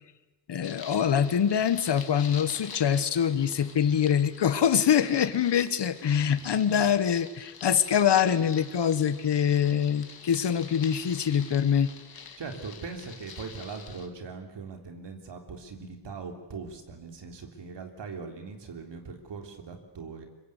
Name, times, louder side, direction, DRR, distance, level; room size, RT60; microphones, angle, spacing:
voice 1, 0.5-11.9, left 8 dB, 80° left, 12 dB, 1.5 m, -24 dB
sound 1, 0.6-14.1, left 6 dB, 55° left, 2.3 m, -46 dB
voice 2, 6.1-6.5 12.4-20.3, right 4 dB, 80° right, 4 dB, 3.6 m, -40 dB
25.0 x 23.0 x 8.4 m, 1.1 s
wide cardioid pair, 145°, 42 cm